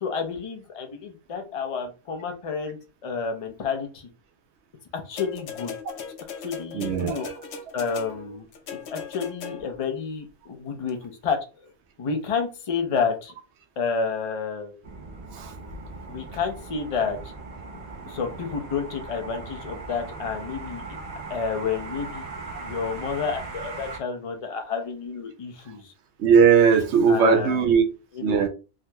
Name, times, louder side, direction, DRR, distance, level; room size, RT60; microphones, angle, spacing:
voice 1, 0.0-2.8 3.0-4.1 4.9-5.7 6.4-7.3 7.7-8.5 8.9-11.0 11.2-11.7 12.0-13.3 13.8-14.8 16.1-17.3 17.7-20.8 21.3-22.2 22.6-25.9 27.1-27.7 28.1-28.4, left 5 dB, 40° left, 0.6 m, -30 dB
sound 1, 5.2-9.9 10.9-11.0, left 6 dB, 75° left, 0.9 m, -39 dB
voice 2, 6.7-7.3 15.3-15.5 21.3-21.4 26.2-27.8 28.2-28.5, right 6 dB, 80° right, 0.9 m, -19 dB
sound 2, 14.8-24.0, right 3 dB, 45° right, 0.7 m, -39 dB
3.6 x 2.9 x 2.2 m
omnidirectional pair, 1.1 m